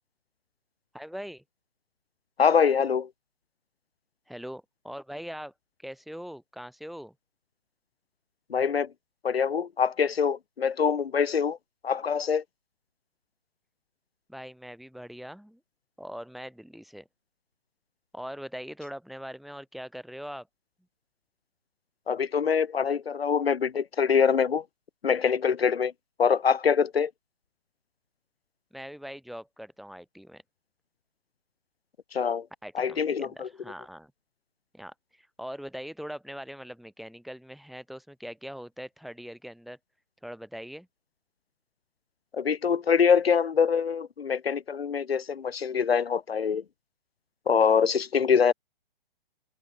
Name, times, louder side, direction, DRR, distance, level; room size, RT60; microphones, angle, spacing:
voice 1, 0.9-1.4 4.3-5.5 5.8-7.1 14.3-15.6 16.0-17.1 18.1-20.5 28.7-30.4 32.6-34.1 34.7-39.8 40.2-40.9, equal, ahead, 4.8 m, -41 dB
voice 2, 2.4-3.1 8.5-8.9 9.2-11.6 11.8-12.4 22.1-24.6 25.0-25.9 26.2-27.1 32.1-32.4 32.7-33.5 42.3-46.6 47.5-48.5, left 6 dB, 90° left, 1.7 m, -24 dB
hypercardioid pair, 150°, 29 cm